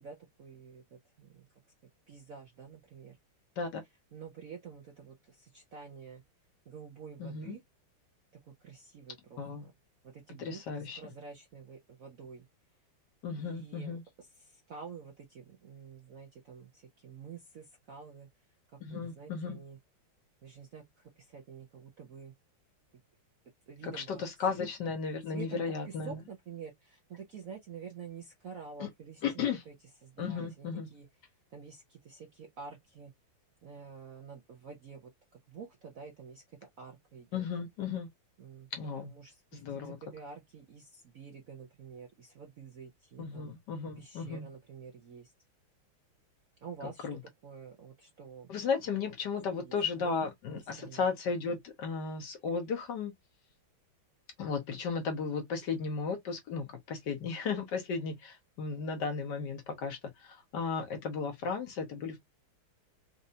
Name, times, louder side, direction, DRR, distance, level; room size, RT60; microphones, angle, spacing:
voice 1, 0.0-1.5 2.1-3.2 4.1-6.2 6.6-7.6 8.4-9.7 10.0-12.5 13.4-18.3 18.7-19.8 20.4-22.3 23.7-24.2 25.3-29.7 30.0-31.1 31.5-33.1 33.6-35.1 35.5-37.5 38.4-43.5 44.0-45.3 46.6-48.5 49.5-50.1 50.5-51.1, right 6 dB, 65° right, 0.8 m, -49 dB
voice 2, 7.2-7.6 9.4-9.7 10.4-11.0 13.2-14.0 18.8-19.6 23.8-26.2 28.8-28.9 29.2-29.6 30.2-30.9 37.3-38.1 38.7-39.1 39.6-40.0 43.2-44.5 47.0-47.2 48.5-53.1 54.4-62.2, left 5 dB, 65° left, 1.3 m, -35 dB
4.3 x 2.6 x 2.7 m
omnidirectional pair, 2.4 m